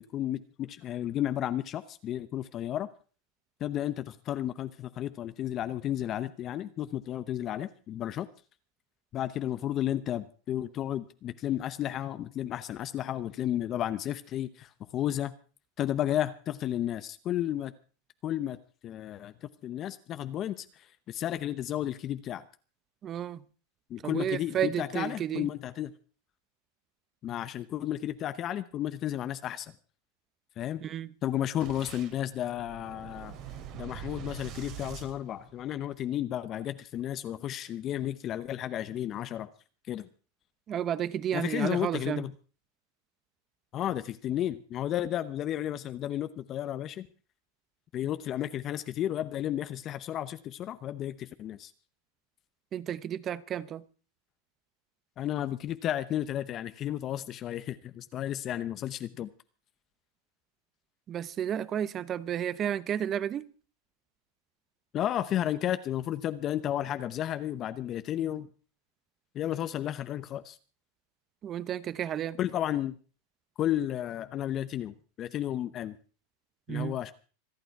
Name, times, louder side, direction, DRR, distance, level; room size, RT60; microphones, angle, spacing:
voice 1, 0.0-2.9 3.6-8.3 9.1-15.3 15.8-17.7 18.2-18.6 18.8-22.4 23.9-25.9 27.2-29.7 30.6-30.8 31.2-33.4 33.7-39.5 39.9-40.1 41.3-42.3 43.7-47.1 47.9-51.7 55.2-59.3 64.9-68.5 69.3-70.6 72.4-73.0 73.6-76.0 76.7-77.1, left 11 dB, 35° left, 0.8 m, -33 dB
voice 2, 23.0-23.4 24.0-25.5 30.8-31.1 40.7-42.3 52.7-53.8 61.1-63.5 71.4-72.4 76.7-77.0, right 10 dB, 30° right, 0.8 m, -32 dB
Boom, 31.6-36.0, right 9 dB, 45° right, 2.7 m, -44 dB
26.5 x 9.0 x 4.7 m
supercardioid pair, 135°, 0 cm